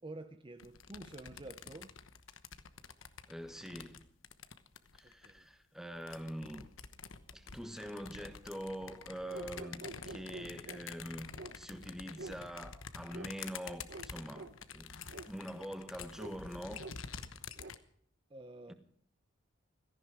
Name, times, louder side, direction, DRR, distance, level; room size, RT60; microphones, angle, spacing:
voice 1, 0.0-1.9 5.0-5.5 18.3-18.7, right 2 dB, 25° right, 0.6 m, -49 dB
sound 1, 0.6-5.4 6.0-17.8, left 6 dB, 85° left, 1.1 m, -49 dB
voice 2, 3.3-4.0 4.9-6.7 7.3-9.8 10.1-15.0 15.3-16.8 18.7-18.8, equal, ahead, 1.4 m, -44 dB
sound 2, 9.3-10.8 11.4-11.5 12.2-12.4 13.1-13.3 13.9-14.1 14.3-14.5 15.1-15.2 16.2-16.3 16.8-16.9 17.6-17.7, right 2 dB, 60° right, 1.1 m, -47 dB
17.0 x 14.0 x 4.9 m
head